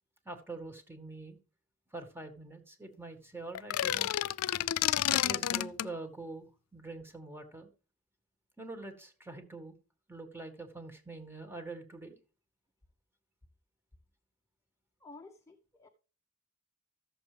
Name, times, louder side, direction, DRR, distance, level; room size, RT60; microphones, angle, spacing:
voice 1, 0.3-1.4 1.9-4.2 5.1-7.7 8.6-9.7 10.1-12.2, right 2 dB, 10° right, 1.7 m, -45 dB
sound 1, 3.6-5.9, left 12 dB, 85° left, 0.4 m, -30 dB
voice 2, 15.0-15.9, left 3 dB, 15° left, 0.8 m, -52 dB
14.0 x 7.1 x 3.4 m
head